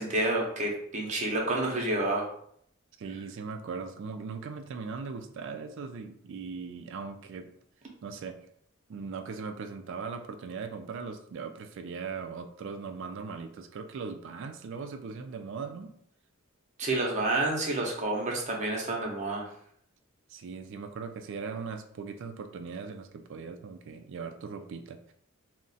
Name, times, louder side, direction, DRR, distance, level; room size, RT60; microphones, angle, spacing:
voice 1, 0.0-2.3 16.8-19.4, right 2 dB, 35° right, -1 dB, 0.7 m, -29 dB
voice 2, 3.0-7.5 8.0-8.4 8.9-15.9 20.3-25.1, right 5 dB, 60° right, 8 dB, 0.3 m, -39 dB
2.4 x 2.1 x 3.9 m, 0.67 s
head